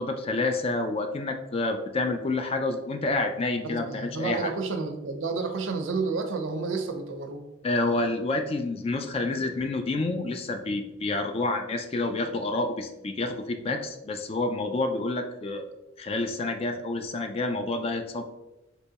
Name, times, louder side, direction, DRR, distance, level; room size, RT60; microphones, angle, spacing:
voice 1, 0.0-4.5 7.6-15.7 16.0-18.2, left 2 dB, 30° left, 6 dB, 0.3 m, -28 dB
voice 2, 3.6-7.5, right 4 dB, 80° right, 6 dB, 0.5 m, -30 dB
3.4 x 3.0 x 2.8 m, 0.96 s
head